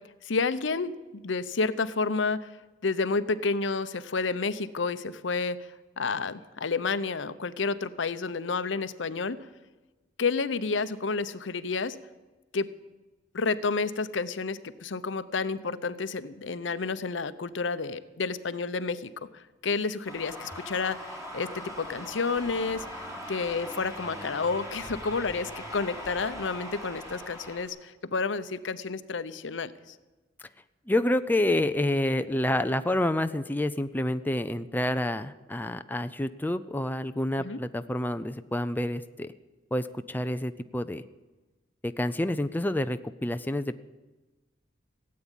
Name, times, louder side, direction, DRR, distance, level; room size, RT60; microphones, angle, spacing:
voice 1, 0.2-2.5 2.8-5.6 6.0-9.4 10.2-12.0 12.5-12.7 13.3-23.0 23.3-30.0 37.4-37.6, left 4 dB, 75° left, 14 dB, 0.8 m, -30 dB
sound 1, 20.0-27.7, equal, 15° right, 3.2 m, -41 dB
voice 2, 30.9-39.3 39.7-41.0 41.8-43.8, left 1 dB, 10° left, 9 dB, 0.4 m, -28 dB
16.5 x 8.6 x 10.0 m, 1.2 s
head